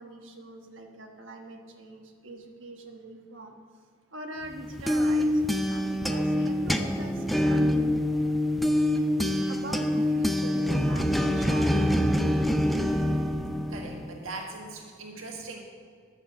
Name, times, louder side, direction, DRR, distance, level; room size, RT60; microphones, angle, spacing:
voice 1, 0.0-3.5 4.1-7.6 9.5-12.3, right 2 dB, 70° right, 3 dB, 1.3 m, -42 dB
sound 1, 4.5-14.2, left 1 dB, ahead, 0.5 m, -25 dB
voice 2, 13.7-15.6, right 3 dB, 90° right, 0 dB, 1.6 m, -40 dB
11.0 x 6.8 x 7.0 m, 2.1 s
head